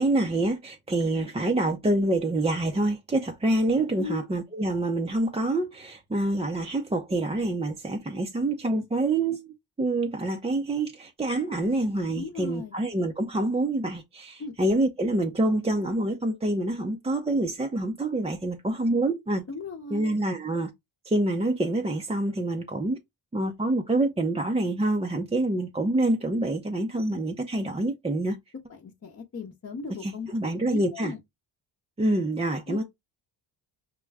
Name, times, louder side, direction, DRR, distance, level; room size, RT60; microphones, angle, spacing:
voice 1, 0.0-19.4 19.9-20.7 21.1-23.0 23.3-28.4 30.0-31.1 32.0-32.8, right 2 dB, 15° right, 0.6 m, -26 dB
voice 2, 12.1-12.8 14.4-14.5 19.5-20.2 28.7-30.3 30.7-31.2 32.7-32.8, left 4 dB, 35° left, 0.8 m, -37 dB
6.2 x 2.2 x 3.4 m
cardioid pair, 100°, 45 cm